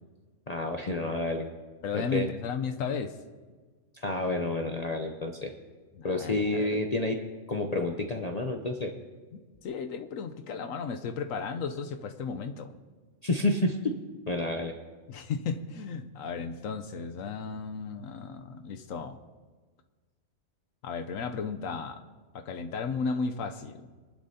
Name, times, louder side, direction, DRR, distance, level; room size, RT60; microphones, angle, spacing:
voice 1, 0.5-1.5 1.9-2.3 3.9-5.5 6.0-7.2 7.5-8.9 13.2-13.9 14.3-14.7, left 2 dB, 40° left, 3 dB, 0.7 m, -29 dB
voice 2, 1.8-3.2 5.9-6.8 9.3-12.7 15.1-19.2 20.8-22.0 22.3-23.9, left 5 dB, 85° left, 7 dB, 1.1 m, -34 dB
22.0 x 12.0 x 2.8 m, 1.4 s
omnidirectional pair, 1.3 m